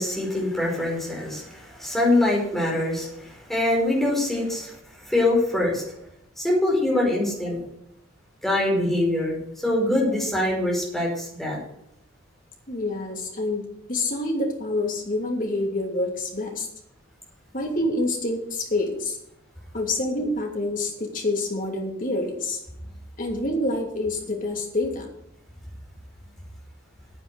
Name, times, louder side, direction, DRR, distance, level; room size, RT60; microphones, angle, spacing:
voice 1, 0.0-4.7 5.1-5.8 6.4-7.6 8.4-11.6, left 1 dB, ahead, -3 dB, 5.0 m, -24 dB
voice 2, 12.7-16.7 17.5-19.2 19.7-22.6 23.2-25.1, left 2 dB, 40° left, 1 dB, 2.8 m, -27 dB
9.8 x 9.2 x 7.0 m, 0.76 s
head